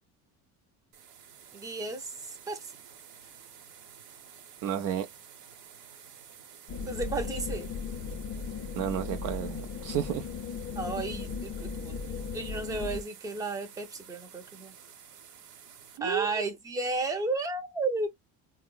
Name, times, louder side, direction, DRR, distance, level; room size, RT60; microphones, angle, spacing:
sound 1, 0.9-16.0, right 8 dB, 85° right, 0.9 m, -51 dB
voice 1, 1.5-2.7 6.9-7.7 10.8-14.7 16.0-18.1, right 3 dB, 10° right, 0.6 m, -33 dB
voice 2, 4.6-5.1 8.8-10.2 16.0-16.4, right 10 dB, 55° right, 0.5 m, -32 dB
sound 2, 6.7-13.0, left 5 dB, 40° left, 0.4 m, -37 dB
3.5 x 2.0 x 2.2 m
cardioid pair, 135°, 39 cm